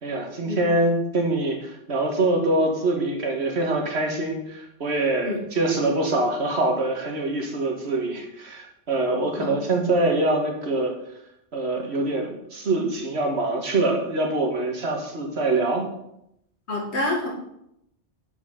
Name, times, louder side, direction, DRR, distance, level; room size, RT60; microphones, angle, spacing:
voice 1, 0.0-10.9 11.5-15.9, right 2 dB, 70° right, 2 dB, 1.7 m, -24 dB
voice 2, 16.7-17.3, left 2 dB, 70° left, -2 dB, 2.5 m, -27 dB
7.2 x 6.1 x 5.0 m, 0.78 s
omnidirectional pair, 1.2 m